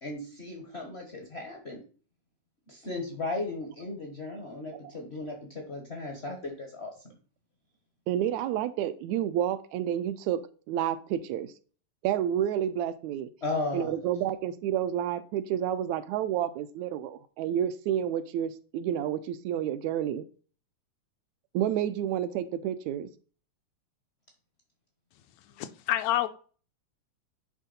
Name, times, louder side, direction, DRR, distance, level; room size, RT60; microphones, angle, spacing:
voice 1, 0.0-1.8 2.7-6.9 13.4-13.9, left 2 dB, 60° left, 2 dB, 0.6 m, -36 dB
voice 2, 8.1-11.5 12.0-13.3 13.7-20.3 21.5-23.1, right 10 dB, 80° right, 12 dB, 1.8 m, -30 dB
voice 3, 25.5-26.3, left 13 dB, 80° left, 10 dB, 1.7 m, -28 dB
9.8 x 3.6 x 4.1 m, 0.40 s
omnidirectional pair, 3.3 m